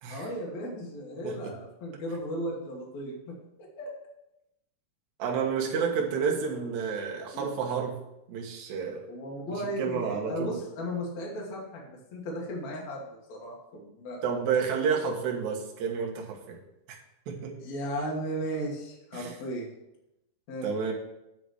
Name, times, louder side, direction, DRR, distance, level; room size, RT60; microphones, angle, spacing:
voice 1, 0.1-3.4 3.8-3.9 7.3-7.5 9.1-11.8 12.1-14.2 17.6-19.7 20.5-20.7, equal, 55° left, -3 dB, 2.2 m, -35 dB
voice 2, 5.2-8.0 8.3-9.0 9.5-10.6 14.2-16.6 16.9-17.0 17.3-17.5 19.1-19.4 20.6-20.9, right 6 dB, 60° right, -1 dB, 2.2 m, -30 dB
9.7 x 3.9 x 6.3 m, 0.89 s
omnidirectional pair, 4.7 m